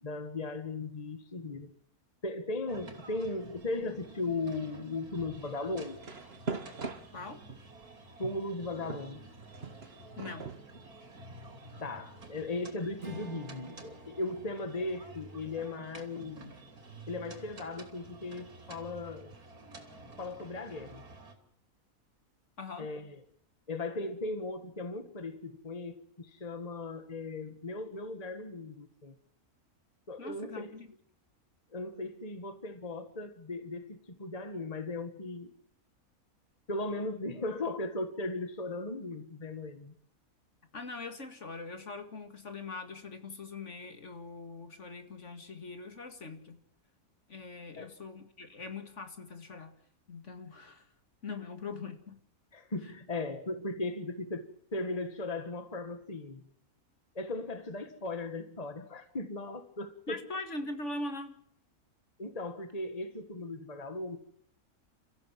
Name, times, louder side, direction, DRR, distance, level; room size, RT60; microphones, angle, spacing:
voice 1, 0.0-1.7 2.2-6.0 8.2-9.3 11.8-16.6 17.1-19.3 20.2-21.1 22.8-23.2 23.7-29.1 30.1-30.8 31.7-35.5 36.7-39.9 47.7-47.9 52.5-56.5 57.1-60.2 62.2-64.2, left 2 dB, 25° left, 9 dB, 1.7 m, -37 dB
sound 1, 2.7-21.4, right 2 dB, 90° right, 3.4 m, -51 dB
sound 2, 5.8-7.7 8.2-11.5, right 4 dB, 45° right, 1.7 m, -42 dB
voice 2, 7.1-7.4 10.2-10.5 22.6-22.9 30.2-30.9 40.7-46.6 47.3-49.7 50.1-50.9 51.2-52.2 60.1-61.4, left 3 dB, 55° left, 8 dB, 2.3 m, -42 dB
Strum, 13.0-17.6, right 4 dB, 60° right, 3.2 m, -51 dB
29.5 x 14.5 x 7.5 m, 0.64 s
omnidirectional pair, 1.5 m